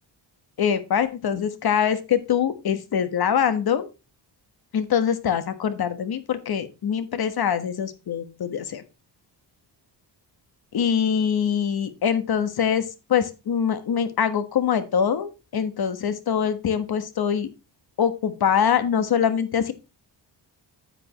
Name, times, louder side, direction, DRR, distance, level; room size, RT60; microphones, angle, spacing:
voice 1, 0.6-3.9 4.7-8.8 10.7-17.5 18.0-19.7, left 8 dB, 55° left, 11 dB, 1.4 m, -24 dB
9.7 x 8.9 x 3.0 m, 0.28 s
wide cardioid pair, 155°, 43 cm